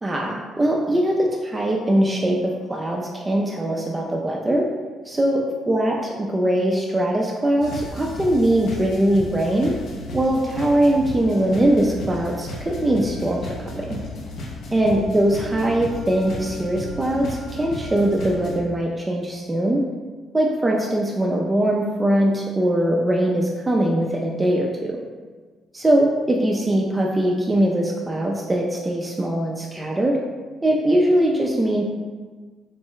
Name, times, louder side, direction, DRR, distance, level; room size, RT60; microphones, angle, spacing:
voice 1, 0.0-4.7 5.0-9.7 10.1-14.0 14.7-19.8 20.3-25.0 25.7-30.2 30.6-31.8, right 1 dB, 15° right, -1 dB, 0.3 m, -21 dB
sound 1, 7.6-18.6, left 2 dB, 65° left, 0.5 m, -34 dB
3.9 x 2.0 x 3.8 m, 1.4 s
cardioid pair, 115°, 0 cm